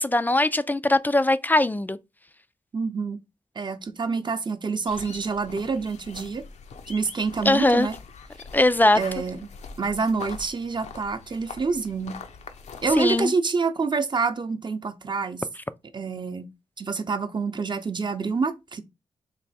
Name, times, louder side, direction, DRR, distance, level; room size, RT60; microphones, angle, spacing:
voice 1, 0.0-2.0 7.4-7.9 8.5-9.0 13.0-13.3, left 2 dB, 15° left, 0.3 m, -20 dB
voice 2, 2.7-3.2 3.6-6.4 6.9-7.9 8.9-9.4 9.8-12.2 12.8-15.4 15.9-16.5 16.8-18.8, right 4 dB, 40° right, 0.7 m, -27 dB
sound 1, 4.9-13.2, left 5 dB, 75° left, 0.6 m, -43 dB
3.3 x 3.0 x 4.2 m
cardioid pair, 60°, 12 cm